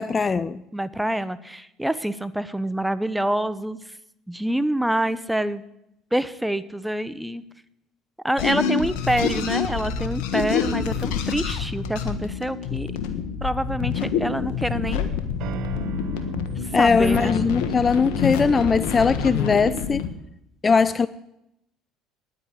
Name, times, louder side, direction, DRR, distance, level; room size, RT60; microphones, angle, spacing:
voice 1, 0.0-0.6 16.7-20.0 20.6-21.1, left 5 dB, 30° left, 17 dB, 0.4 m, -20 dB
voice 2, 0.7-3.8 4.3-5.6 6.1-7.4 8.2-12.9 13.4-15.1 16.7-17.3, right 1 dB, 5° right, 14 dB, 0.8 m, -26 dB
sound 1, 8.4-20.1, left 7 dB, 75° left, 1.4 m, -27 dB
sound 2, 13.9-14.7 15.4-19.0, right 9 dB, 65° right, 1.0 m, -38 dB
10.0 x 9.0 x 9.9 m, 0.84 s
hypercardioid pair, 70°, 0 cm